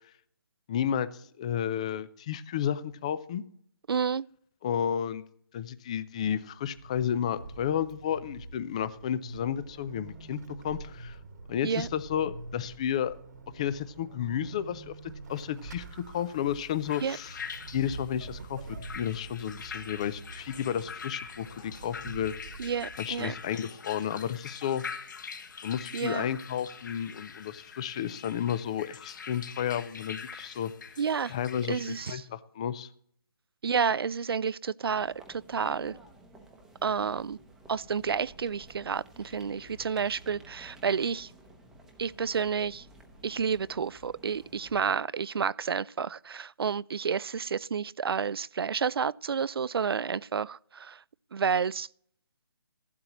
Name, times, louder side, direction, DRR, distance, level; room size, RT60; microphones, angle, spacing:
voice 1, 0.7-3.4 4.6-5.2 5.5-11.2 11.5-13.1 13.5-17.4 17.7-18.6 18.9-22.3 23.0-24.8 25.6-30.7 31.3-31.8 32.1-32.9, left 9 dB, 15° left, 0.4 m, -32 dB
voice 2, 3.9-4.2 11.6-11.9 17.0-17.2 22.6-23.3 25.9-26.3 31.0-31.3 31.7-32.2 33.6-36.0 36.8-37.4 37.7-41.3 42.0-42.8 43.2-51.0 51.3-51.9, right 6 dB, 75° right, 0.4 m, -30 dB
Vehicle / Accelerating revving vroom / Squeak, 6.4-23.6, right 3 dB, 45° right, 1.2 m, -46 dB
sound 1, 16.2-32.1, left 6 dB, 50° left, 1.6 m, -44 dB
sound 2, 35.0-44.9, right 1 dB, 5° right, 0.8 m, -53 dB
15.5 x 12.0 x 3.0 m
hypercardioid pair, 165°, 13 cm